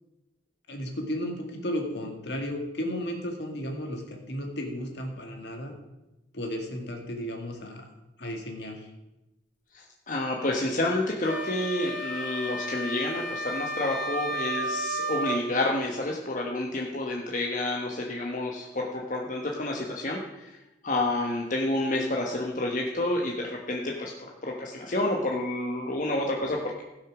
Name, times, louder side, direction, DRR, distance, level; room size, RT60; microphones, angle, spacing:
voice 1, 0.7-5.7 6.3-7.9 8.2-8.9, equal, 65° left, 2 dB, 2.2 m, -34 dB
voice 2, 9.7-20.6 20.8-24.1 24.4-26.8, left 2 dB, 45° left, -1 dB, 1.2 m, -29 dB
sound 1, 11.2-15.5, right 1 dB, 90° left, 2.2 m, -32 dB
15.5 x 6.4 x 6.1 m, 0.98 s
head